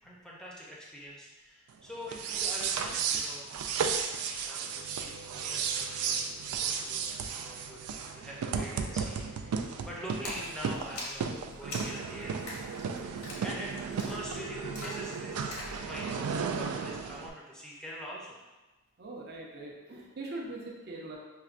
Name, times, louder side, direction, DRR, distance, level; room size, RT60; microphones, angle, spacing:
voice 1, 0.0-3.6 4.1-6.3 6.6-7.0 7.3-12.6 13.0-18.4, equal, 5° left, -4 dB, 0.5 m, -44 dB
sound 1, 2.0-17.3, right 6 dB, 90° right, 0.3 m, -34 dB
Splash splatter, 10.2-15.8, left 2 dB, 80° left, 0.8 m, -43 dB
voice 2, 19.0-21.2, right 2 dB, 45° right, -2 dB, 0.6 m, -42 dB
5.7 x 2.1 x 2.4 m, 1.2 s
head